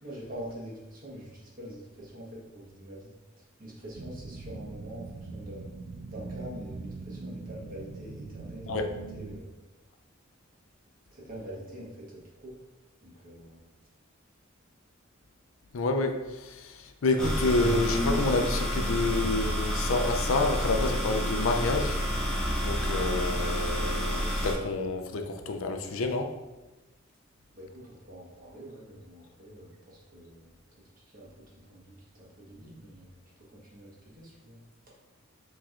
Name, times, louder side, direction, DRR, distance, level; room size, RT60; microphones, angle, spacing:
voice 1, 0.0-5.7 6.1-9.5 11.1-12.6 13.0-13.6 27.5-30.5 31.1-34.6, equal, 45° right, -5 dB, 1.3 m, -45 dB
sound 1, 3.9-9.4, right 3 dB, 80° right, 0.4 m, -42 dB
voice 2, 15.7-22.0 22.6-26.3, left 2 dB, 90° left, 5 dB, 0.5 m, -29 dB
sound 2, 17.2-24.5, equal, 5° left, 1.0 m, -29 dB
5.8 x 3.1 x 2.5 m, 1.1 s
head